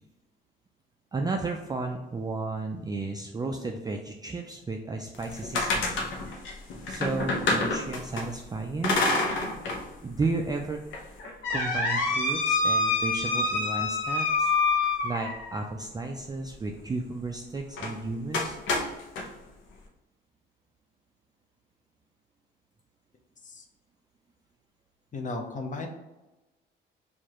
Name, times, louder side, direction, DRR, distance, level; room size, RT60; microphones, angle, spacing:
voice 1, 1.1-6.0 6.9-9.0 10.0-10.8 11.5-14.5 15.0-18.6, right 3 dB, 20° right, 2 dB, 0.3 m, -33 dB
sound 1, 5.1-8.2 8.8-9.8 10.2-10.3 10.9-15.6 17.7-17.9 18.3-19.3, left 3 dB, 75° left, 0.8 m, -27 dB
voice 2, 25.1-25.9, left 3 dB, 40° left, 3 dB, 0.7 m, -35 dB
4.6 x 2.5 x 2.9 m, 1.0 s
cardioid pair, 90°, 20 cm